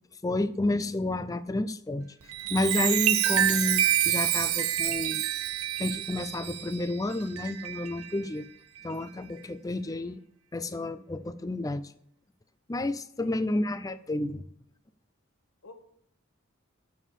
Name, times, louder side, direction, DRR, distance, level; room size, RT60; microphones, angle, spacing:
voice 1, 0.2-2.1 2.5-5.2 5.8-8.5 8.8-10.2 10.5-11.9 12.7-14.4, left 2 dB, 15° left, 0.4 m, -30 dB
Chime, 2.2-8.2 8.8-9.0, right 12 dB, 90° right, 0.7 m, -28 dB
voice 2, 9.9-10.2 13.2-13.5 15.6-15.7, left 3 dB, 70° left, 1.0 m, -51 dB
7.1 x 6.4 x 7.4 m
head